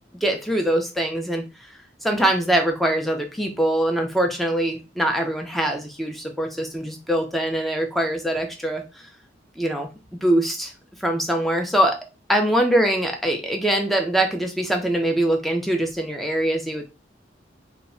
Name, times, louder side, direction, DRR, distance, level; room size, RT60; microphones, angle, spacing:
voice 1, 0.2-1.7 2.0-9.1 9.6-10.7 11.0-12.0 12.3-16.8, right 1 dB, ahead, 2 dB, 0.4 m, -23 dB
2.1 x 2.0 x 3.6 m, 0.28 s
head